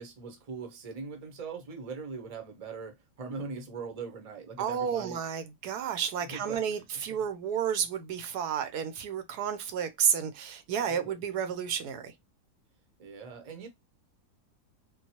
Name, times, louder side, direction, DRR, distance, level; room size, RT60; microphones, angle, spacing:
voice 1, 0.0-5.2 6.2-6.8 10.7-11.2 13.0-13.7, right 4 dB, 35° right, 0.6 m, -41 dB
voice 2, 4.6-12.1, right 8 dB, 75° right, 1.1 m, -31 dB
3.7 x 2.2 x 2.8 m
omnidirectional pair, 1.7 m